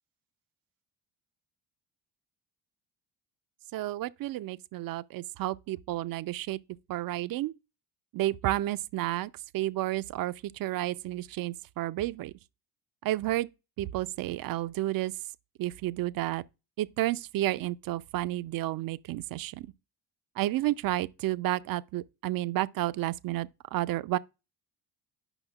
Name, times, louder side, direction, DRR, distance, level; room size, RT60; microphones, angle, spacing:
voice 1, 3.7-6.6 6.9-7.5 8.1-12.3 13.0-13.5 13.8-15.1 15.6-16.4 16.8-19.7 20.4-24.2, right 15 dB, 50° right, 0.5 m, -31 dB
8.9 x 5.6 x 2.3 m
hypercardioid pair, 50°, 47 cm